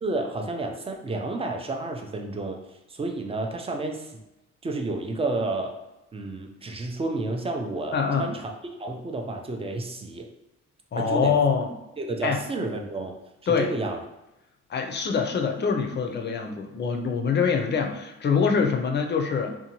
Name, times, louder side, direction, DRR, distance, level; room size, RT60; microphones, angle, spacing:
voice 1, 0.0-2.6 2.9-4.2 4.6-5.8 6.1-8.5 8.8-10.3 11.0-11.4 12.0-13.2 13.5-14.0, right 2 dB, 20° right, 3 dB, 0.4 m, -30 dB
voice 2, 7.9-8.3 10.9-11.7 12.2-12.4 13.5-13.7 14.7-19.6, left 5 dB, 35° left, 4 dB, 0.5 m, -24 dB
2.6 x 2.2 x 2.9 m, 0.96 s
cardioid pair, 90°, 30 cm